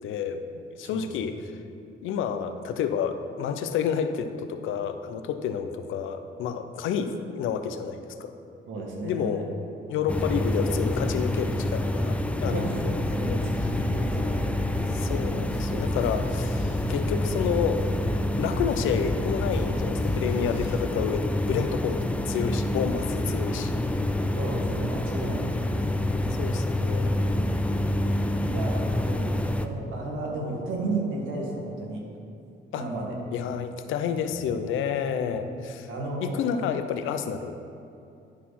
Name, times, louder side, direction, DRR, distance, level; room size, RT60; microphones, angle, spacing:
voice 1, 0.0-1.5 2.0-8.3 9.0-9.5 9.9-13.5 14.9-16.6 16.9-17.8 18.4-23.7 26.4-27.1 32.7-32.8 33.3-35.9 36.2-37.5, left 7 dB, 85° left, 9 dB, 0.6 m, -30 dB
voice 2, 8.7-9.4 12.5-14.7 23.3-23.4 24.4-26.0 28.4-32.0 32.7-33.2 35.1-35.6 35.9-36.4, right 2 dB, 80° right, -2 dB, 1.8 m, -33 dB
sound 1, 10.1-29.7, left 1 dB, 5° left, 0.4 m, -27 dB
sound 2, 12.8-20.8, left 1 dB, 65° left, 1.6 m, -37 dB
11.5 x 4.1 x 5.8 m, 2.6 s
cardioid pair, 90°, 20 cm